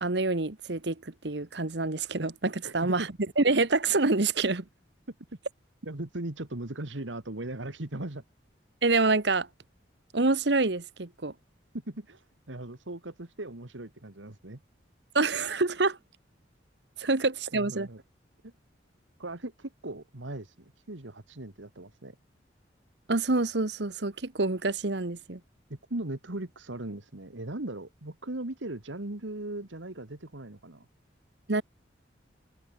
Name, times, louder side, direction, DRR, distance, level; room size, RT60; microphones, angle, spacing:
voice 1, 0.0-3.1 3.4-4.6 8.8-9.5 10.1-11.3 15.1-16.0 17.0-17.9 23.1-25.4 31.5-31.6, right 3 dB, 65° right, 1.3 m, -27 dB
voice 2, 2.6-3.1 5.8-8.2 11.9-14.6 17.0-17.1 17.5-18.0 18.4-18.5 19.2-22.2 25.7-30.9, right 1 dB, 80° right, 2.0 m, -38 dB
head